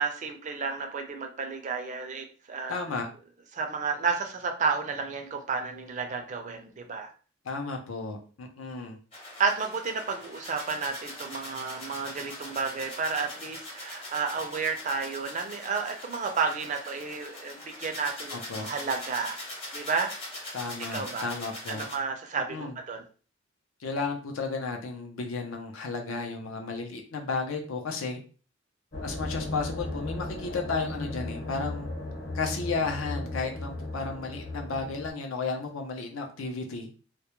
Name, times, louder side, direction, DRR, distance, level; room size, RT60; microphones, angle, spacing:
voice 1, 0.0-2.8 3.5-7.1 9.4-19.4 19.7-20.1 20.9-21.3 21.7-23.0, right 5 dB, 35° right, 4 dB, 0.4 m, -31 dB
voice 2, 2.7-3.1 7.4-9.0 18.3-18.7 20.5-21.9 22.5-22.8 23.8-28.2 29.0-31.9 32.3-36.9, left 4 dB, 80° left, 3 dB, 0.6 m, -33 dB
sound 1, 9.1-21.9, left 1 dB, 30° left, 0.7 m, -42 dB
sound 2, 28.9-35.1, left 2 dB, 55° left, 1.0 m, -36 dB
2.2 x 2.1 x 2.9 m, 0.39 s
head